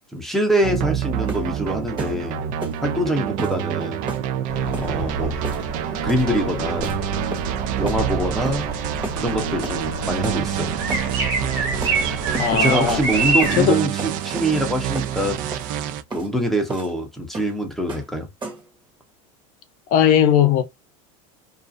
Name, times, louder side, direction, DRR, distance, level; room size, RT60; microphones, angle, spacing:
voice 1, 0.1-2.4 2.8-4.1 4.8-5.4 6.0-7.0 7.8-8.7 9.2-10.8 12.5-15.6 16.1-18.3, right 1 dB, ahead, 0.6 m, -24 dB
sound 1, 0.6-16.0, right 10 dB, 50° right, 0.4 m, -27 dB
sound 2, 1.3-1.5 2.0-2.2 2.6-2.8 3.4-3.6 4.1-4.3 4.7-4.9 5.4-5.7 6.1-6.3 6.8-7.0 7.3-7.6 7.9-8.0 8.4-8.6 9.0-9.2 9.6-9.8 10.2-10.4 10.9-11.1 11.8-12.0 12.3-12.5 12.9-13.1 13.4-13.6 14.0-14.5 14.9-15.1 15.5-15.7 16.1-16.3 16.7-16.9 17.3-17.6 17.9-18.1 18.4-18.7, right 3 dB, 25° right, 1.0 m, -33 dB
sound 3, 4.5-13.7, right 3 dB, 80° right, 1.2 m, -27 dB
voice 2, 12.4-13.0 13.6-13.8 19.9-20.6, left 9 dB, 55° left, 0.7 m, -17 dB
2.4 x 2.3 x 2.5 m
supercardioid pair, 120°, 18 cm